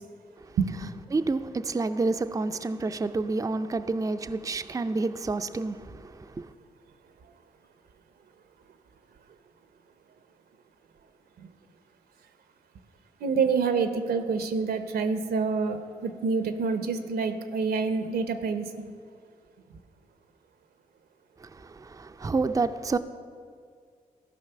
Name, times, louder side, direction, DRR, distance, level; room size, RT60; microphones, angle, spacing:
voice 1, 1.1-6.5 21.4-23.0, right 3 dB, 20° right, 0.4 m, -29 dB
voice 2, 13.2-18.7, right 5 dB, 80° right, 0.8 m, -27 dB
13.5 x 5.2 x 6.8 m
supercardioid pair, 55°, 16 cm